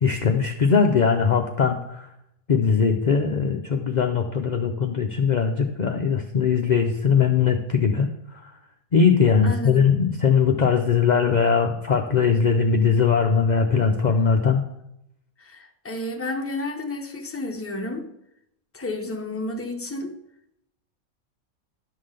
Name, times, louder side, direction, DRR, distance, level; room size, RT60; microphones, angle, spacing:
voice 1, 0.0-2.1 2.5-8.5 8.9-14.6, left 6 dB, 60° left, 0.4 m, -20 dB
voice 2, 9.4-9.9 15.4-18.1 18.7-20.2, left 2 dB, 15° left, 0.6 m, -31 dB
11.5 x 3.8 x 6.5 m
omnidirectional pair, 1.5 m